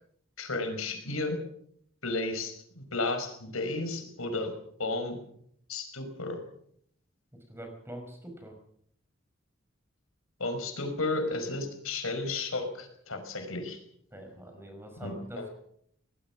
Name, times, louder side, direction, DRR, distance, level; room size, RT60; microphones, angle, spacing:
voice 1, 0.4-1.4 2.0-4.5 4.8-5.2 5.7-6.4 10.4-13.8 15.0-15.5, left 2 dB, 90° left, 6 dB, 5.3 m, -33 dB
voice 2, 7.5-8.5 14.1-15.5, right 1 dB, 10° right, 4 dB, 5.5 m, -44 dB
22.5 x 19.0 x 6.1 m, 0.66 s
head